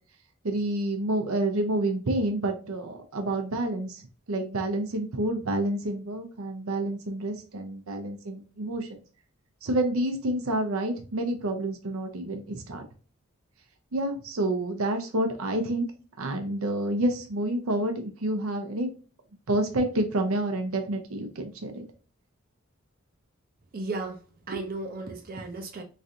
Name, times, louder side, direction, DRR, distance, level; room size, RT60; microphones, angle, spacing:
voice 1, 0.4-9.0 9.6-12.8 13.9-15.9 16.2-18.9 19.5-21.8, right 1 dB, 80° right, 0.7 m, -29 dB
voice 2, 23.7-24.2 24.5-25.8, right 3 dB, 45° right, 0.6 m, -34 dB
3.2 x 2.5 x 2.7 m
head